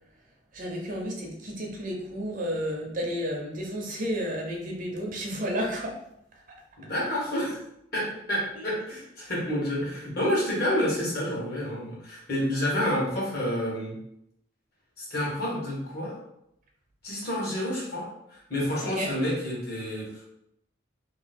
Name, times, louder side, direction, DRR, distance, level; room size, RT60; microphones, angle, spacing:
voice 1, 0.5-5.9 8.6-8.7 19.0-19.1, equal, 45° right, 0 dB, 0.7 m, -32 dB
voice 2, 6.8-7.6 7.9-14.0 15.0-16.2 17.0-20.2, equal, 50° left, -5 dB, 1.4 m, -29 dB
3.0 x 2.5 x 4.2 m, 0.80 s
head